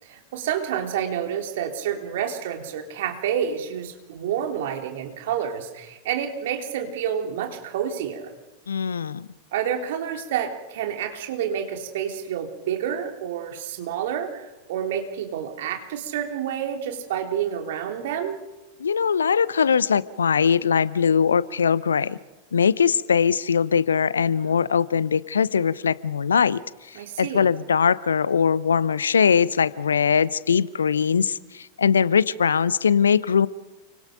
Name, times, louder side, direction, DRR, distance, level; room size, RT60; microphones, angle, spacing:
voice 1, 0.0-8.3 9.5-18.4 24.4-24.6 27.0-27.5, right 9 dB, 55° right, 4 dB, 3.5 m, -29 dB
voice 2, 8.7-9.3 18.8-22.2 22.5-26.6 26.9-33.5, left 6 dB, 70° left, 20 dB, 0.8 m, -21 dB
29.5 x 24.5 x 5.2 m, 1.1 s
figure-of-eight pair, 90°, 0 cm